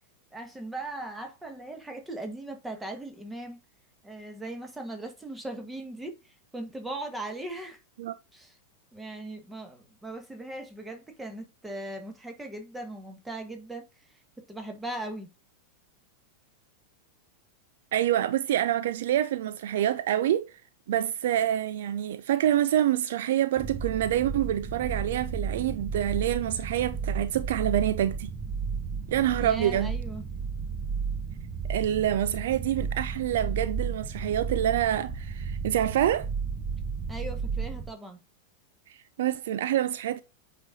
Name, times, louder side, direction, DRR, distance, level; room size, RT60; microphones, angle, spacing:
voice 1, 0.3-3.6 4.0-7.8 8.3-8.6 8.9-14.2 14.5-15.3 29.4-30.3 37.1-38.2, right 2 dB, 10° right, 1.7 m, -39 dB
voice 2, 17.9-20.5 20.9-28.3 29.1-29.9 31.7-36.3 38.9-40.2, right 11 dB, 55° right, 0.4 m, -26 dB
sound 1, 23.6-37.9, right 5 dB, 25° right, 1.0 m, -33 dB
8.0 x 5.2 x 2.6 m
figure-of-eight pair, 90°, 0 cm